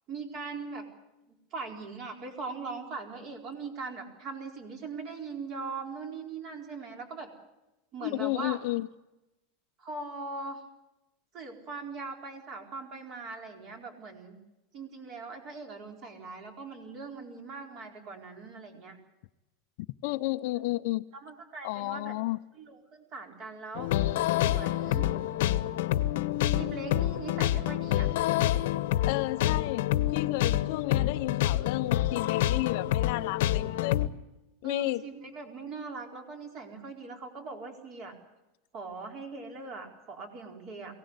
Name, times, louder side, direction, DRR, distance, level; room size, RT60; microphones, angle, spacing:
voice 1, 0.1-0.9 1.3-7.3 7.9-8.6 9.8-10.6 11.3-14.4 14.7-19.0 21.1-22.1 22.5-23.9 24.4-25.1 26.5-28.1 34.6-38.1 38.7-40.9, right 4 dB, 35° right, 4.3 m, -40 dB
voice 2, 8.0-8.9 20.0-21.0 21.6-22.4 29.1-29.9 30.1-34.0 34.6-35.0, left 19 dB, 55° left, 0.7 m, -32 dB
sound 1, 23.7-34.1, left 13 dB, 70° left, 1.0 m, -27 dB
23.0 x 17.5 x 8.2 m
supercardioid pair, 165°, 0 cm